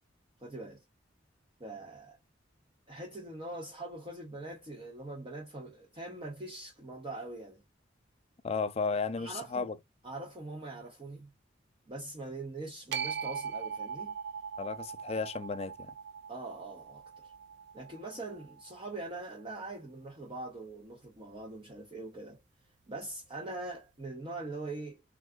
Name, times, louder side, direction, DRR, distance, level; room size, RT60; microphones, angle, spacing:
voice 1, 0.4-0.8 1.6-2.2 2.9-7.6 9.2-9.7 10.0-11.3 11.9-14.1 16.3-17.3 17.7-22.4 22.9-25.0, right 2 dB, 30° right, 0.6 m, -42 dB
voice 2, 8.4-9.8 14.6-15.9, left 4 dB, 35° left, 0.3 m, -34 dB
sound 1, 12.9-19.1, right 7 dB, 65° right, 0.3 m, -41 dB
3.5 x 2.3 x 2.2 m
head